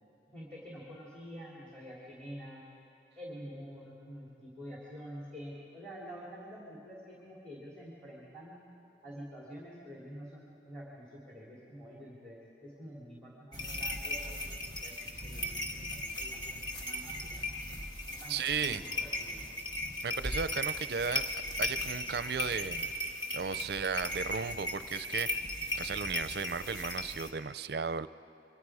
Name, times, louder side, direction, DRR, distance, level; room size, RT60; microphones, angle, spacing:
voice 1, 0.3-2.6 3.1-8.6 9.0-14.5 14.8-17.5 18.0-18.4 18.6-19.7, equal, 5° left, -5 dB, 3.0 m, -48 dB
sound 1, 13.5-27.3, left 1 dB, 25° left, 1.7 m, -37 dB
voice 2, 18.3-18.8 20.0-21.2 21.6-22.9 23.3-25.3 25.7-28.1, right 6 dB, 60° right, 14 dB, 0.5 m, -35 dB
27.5 x 24.0 x 4.9 m, 2.9 s
head